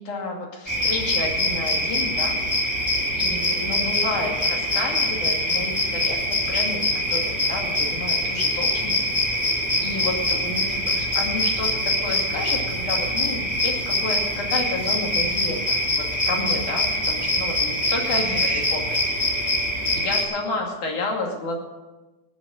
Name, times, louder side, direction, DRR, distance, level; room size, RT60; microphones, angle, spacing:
voice 1, 0.0-2.8 3.2-19.2 19.9-21.6, left 2 dB, 90° left, 0 dB, 4.1 m, -31 dB
sound 1, 0.7-20.2, left 1 dB, 5° right, 3.9 m, -24 dB
22.0 x 8.3 x 6.3 m, 1.1 s
omnidirectional pair, 3.4 m